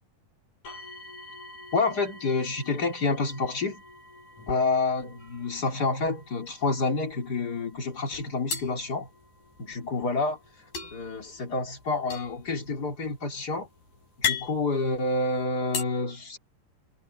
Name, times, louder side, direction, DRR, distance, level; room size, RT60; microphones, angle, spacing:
sound 1, 0.6-13.5 14.4-14.5 15.0-15.1, left 1 dB, 60° left, 9.6 m, -50 dB
voice 1, 1.7-3.8 4.5-9.1 9.6-10.4 10.9-13.7 14.2-16.4, left 3 dB, 30° left, 3.7 m, -28 dB
sound 2, 5.2-6.1 6.4-6.6 6.8-7.6 8.5-9.8 10.7-15.8, left 8 dB, 85° left, 9.1 m, -35 dB
omnidirectional pair, 3.9 m